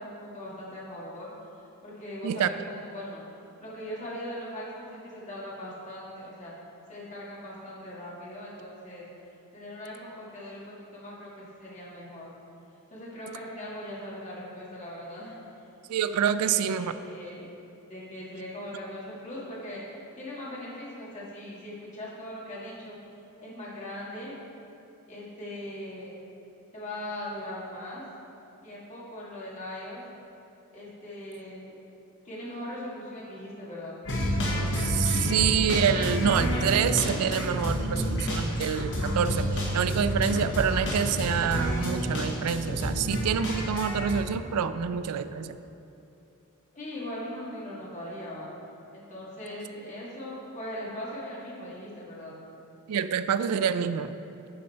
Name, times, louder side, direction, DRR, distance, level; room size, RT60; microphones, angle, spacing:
voice 1, 0.0-1.3 1.8-3.2 3.6-6.5 6.9-9.1 9.5-12.3 12.9-15.4 16.4-17.5 17.9-19.8 20.2-23.0 23.4-24.3 25.1-26.2 26.7-28.0 28.6-30.0 30.7-31.7 32.2-34.0 46.7-48.5 48.9-52.4, left 1 dB, 35° left, -6 dB, 2.0 m, -40 dB
voice 2, 15.9-16.9 34.8-45.6 52.9-54.1, right 7 dB, 90° right, 12 dB, 0.4 m, -27 dB
sound 1, 34.0-44.1, equal, 60° left, 1.6 m, -29 dB
10.5 x 5.5 x 4.2 m, 2.8 s
head